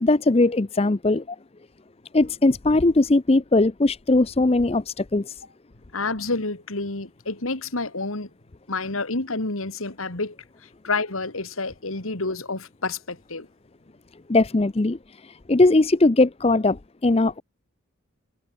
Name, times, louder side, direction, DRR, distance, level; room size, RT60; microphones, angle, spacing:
voice 1, 0.0-1.4 2.1-5.3 14.3-15.0 15.2-17.4, left 2 dB, 30° left, 0.5 m, -20 dB
voice 2, 5.9-8.3 8.7-10.4 10.6-13.5, left 3 dB, 80° left, 2.7 m, -29 dB
head